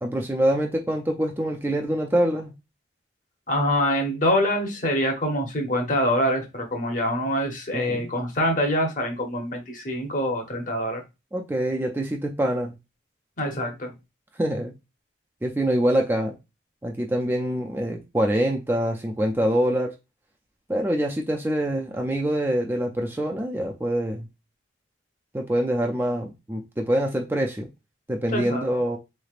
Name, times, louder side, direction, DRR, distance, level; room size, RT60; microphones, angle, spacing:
voice 1, 0.0-2.5 7.7-8.1 11.3-12.7 14.4-14.7 15.4-16.3 16.8-19.9 20.7-24.3 25.3-27.7 28.1-29.0, right 1 dB, 10° right, 2 dB, 0.3 m, -25 dB
voice 2, 3.5-11.0 13.4-13.9 28.3-28.6, equal, 40° left, 3 dB, 0.9 m, -25 dB
3.9 x 3.3 x 2.4 m, 0.25 s
head